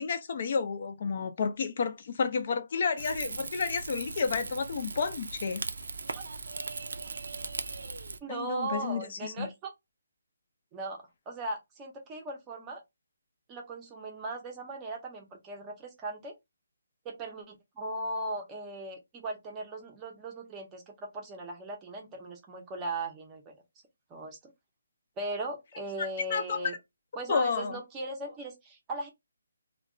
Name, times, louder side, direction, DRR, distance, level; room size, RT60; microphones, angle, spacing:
voice 1, 0.0-5.6 8.3-9.5 26.0-26.6 27.3-27.8, left 5 dB, 45° left, 0.4 m, -31 dB
Rain / Fire, 3.0-8.2, right 3 dB, 80° right, 0.4 m, -38 dB
voice 2, 8.2-9.7 10.7-12.8 13.5-16.3 17.0-23.5 24.1-24.4 25.2-26.7 27.2-29.1, right 2 dB, 15° right, 0.6 m, -38 dB
2.2 x 2.2 x 3.6 m
hypercardioid pair, 170°, 0 cm